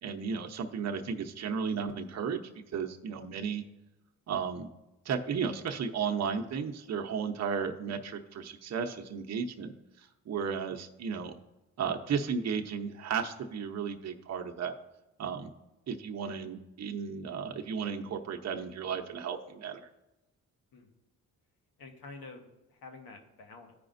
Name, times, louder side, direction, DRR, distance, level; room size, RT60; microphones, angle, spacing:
voice 1, 0.0-2.4 2.7-3.6 4.3-4.7 5.0-11.3 11.8-14.8 15.2-15.5 15.9-19.9, right 6 dB, 50° right, 4 dB, 0.8 m, -34 dB
voice 2, 21.8-23.7, left 3 dB, 85° left, 4 dB, 1.4 m, -49 dB
14.0 x 5.0 x 2.6 m, 0.98 s
cardioid pair, 80°, 34 cm